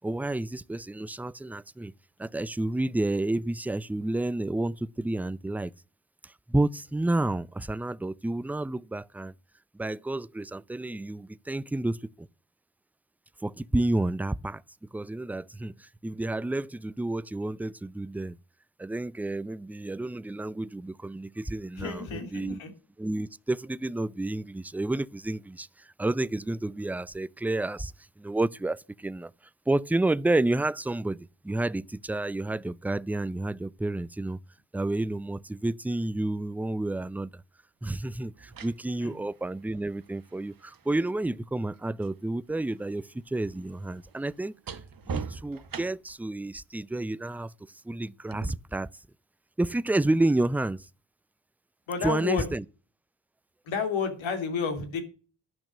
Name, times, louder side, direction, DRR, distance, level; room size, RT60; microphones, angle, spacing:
voice 1, 0.0-1.9 2.2-5.7 6.2-9.3 9.7-12.3 13.4-14.6 14.9-18.4 18.8-22.6 23.0-27.9 28.2-29.3 29.7-34.4 34.7-37.4 37.8-44.8 45.1-47.5 47.8-48.9 49.6-50.9 52.0-52.6, right 2 dB, 5° right, 0.4 m, -30 dB
voice 2, 21.8-22.7 39.0-39.2 51.9-52.5 53.6-55.0, left 5 dB, 80° left, 2.8 m, -31 dB
sound 1, 37.1-37.2 38.2-42.2 42.5-46.3 48.3-48.5, right 5 dB, 45° right, 1.4 m, -42 dB
11.0 x 5.9 x 7.4 m
supercardioid pair, 45°, 46 cm